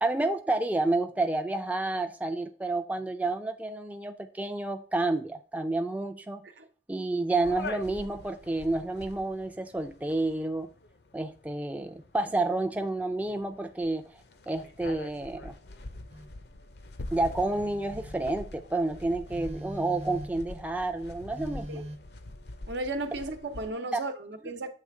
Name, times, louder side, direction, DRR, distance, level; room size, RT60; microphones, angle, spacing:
voice 1, 0.0-6.4 6.9-10.7 11.1-14.1 14.5-15.5 17.1-21.8 23.9-24.0, right 2 dB, 10° right, 0.4 m, -30 dB
sound 1, 7.4-23.7, left 2 dB, 65° left, 0.6 m, -45 dB
Telephone, 16.1-16.4 17.3-18.4 19.3-20.5 21.3-22.0, equal, 40° right, 0.8 m, -42 dB
voice 2, 22.7-24.7, right 2 dB, 80° right, 0.9 m, -35 dB
7.6 x 3.3 x 4.7 m
head